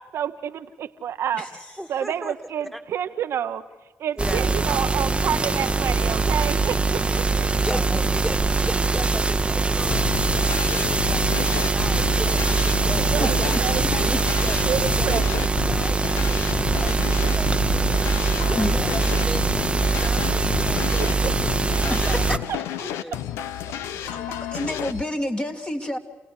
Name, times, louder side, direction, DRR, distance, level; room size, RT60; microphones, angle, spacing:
voice 1, 0.0-1.5 1.9-3.6 4.0-7.5 13.0-14.1 14.7-15.3, right 9 dB, 75° right, 9 dB, 0.8 m, -29 dB
voice 2, 1.8-2.3 2.7-2.8 4.2-4.5 7.4-13.7 14.4-14.6 15.0-23.2 23.9-24.8, equal, 5° left, 6 dB, 2.1 m, -37 dB
sound 1, 4.2-22.4, right 3 dB, 25° right, 0.9 m, -22 dB
voice 3, 7.7-8.3 12.9-14.2 18.6-18.9 21.8-22.4 24.0-26.0, left 1 dB, 25° left, 4 dB, 2.4 m, -30 dB
sound 2, 9.9-25.0, left 11 dB, 90° left, 0.7 m, -31 dB
28.0 x 17.0 x 8.2 m, 1.2 s
supercardioid pair, 50°, 4 cm